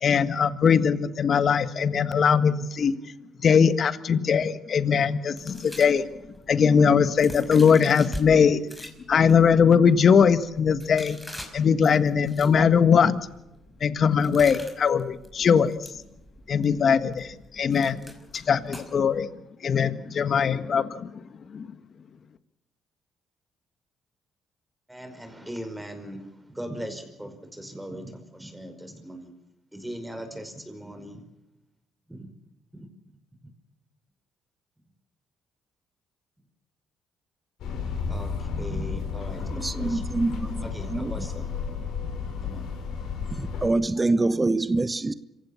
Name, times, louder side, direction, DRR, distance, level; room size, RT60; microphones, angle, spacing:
voice 1, 0.0-3.0 3.4-6.1 6.5-8.7 9.1-11.2 11.5-13.2 13.8-15.7 16.5-18.0 18.3-19.3 19.6-21.2 21.5-21.7, left 6 dB, 50° left, 1.6 m, -21 dB
sound 1, 5.4-8.3 8.6-19.2, left 1 dB, 10° left, 5.3 m, -44 dB
voice 2, 24.9-29.3 29.7-31.2 32.1-32.3 32.7-32.9 38.1-40.4 40.6-41.5 42.4-42.7, equal, 5° right, 5.2 m, -39 dB
sound 2, 37.6-43.7, left 5 dB, 75° left, 5.8 m, -32 dB
voice 3, 39.5-40.7 40.9-41.1 43.3-45.1, right 2 dB, 20° right, 1.1 m, -25 dB
26.5 x 16.0 x 7.2 m
cardioid pair, 85°, 0 cm